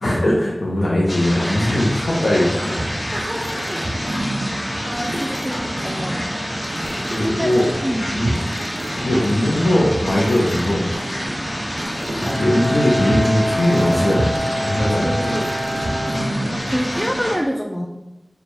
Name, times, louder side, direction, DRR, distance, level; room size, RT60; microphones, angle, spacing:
voice 1, 0.0-2.9 7.1-7.7 8.1-8.4 9.0-10.9 12.4-14.3 14.5-15.4, left 1 dB, 90° left, -6 dB, 0.7 m, -19 dB
sound 1, 1.1-17.3, equal, 50° left, 1.4 m, -28 dB
voice 2, 1.4-1.8 2.8-4.0 4.4-6.3 6.8-7.5 7.8-8.2 9.1-9.3 14.7-15.5 16.5-17.9, equal, ahead, 0 dB, 0.3 m, -28 dB
sound 2, 2.5-17.1, right 1 dB, 85° right, 0.4 m, -31 dB
Bowed string instrument, 12.2-17.0, equal, 25° left, 1.0 m, -26 dB
4.3 x 2.3 x 3.2 m, 0.99 s
wide cardioid pair, 60°, 0 cm